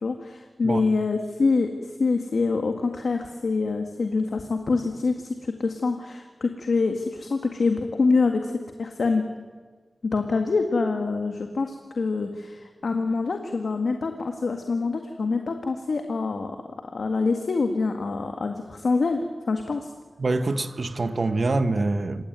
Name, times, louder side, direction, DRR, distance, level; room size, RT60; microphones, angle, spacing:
voice 1, 0.0-1.7 2.0-8.5 8.8-9.3 10.0-19.9, left 4 dB, 80° left, 4 dB, 1.9 m, -25 dB
voice 2, 20.2-22.2, right 3 dB, 55° right, 9 dB, 1.5 m, -25 dB
28.0 x 17.5 x 9.3 m, 1.5 s
wide cardioid pair, 90°, 0 cm